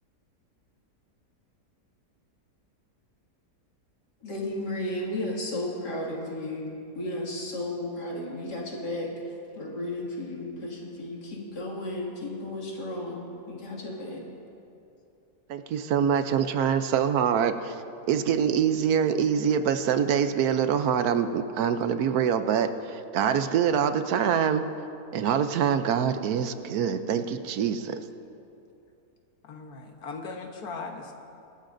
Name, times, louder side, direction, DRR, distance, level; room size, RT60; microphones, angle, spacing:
voice 1, 4.2-14.2, left 1 dB, 90° left, -3 dB, 2.8 m, -34 dB
voice 2, 15.5-17.7 18.1-24.6 25.1-28.0, right 8 dB, 70° right, 9 dB, 1.1 m, -25 dB
voice 3, 29.4-31.1, left 4 dB, 70° left, 3 dB, 1.6 m, -38 dB
24.0 x 12.5 x 2.6 m, 2.7 s
omnidirectional pair, 1.7 m